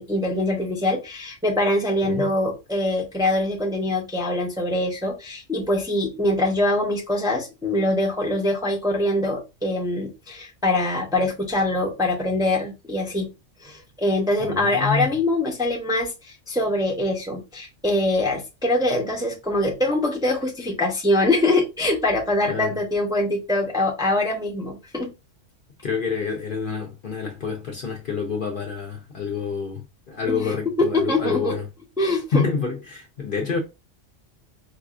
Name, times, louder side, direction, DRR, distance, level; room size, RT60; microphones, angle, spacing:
voice 1, 0.0-13.3 13.6-25.1 30.3-30.5 30.8-31.5 32.0-32.4, left 1 dB, 5° right, 0.6 m, -23 dB
voice 2, 14.4-15.1 22.5-22.8 25.8-31.7 32.3-33.6, left 5 dB, 55° left, 0.7 m, -28 dB
4.6 x 2.4 x 2.4 m
omnidirectional pair, 1.3 m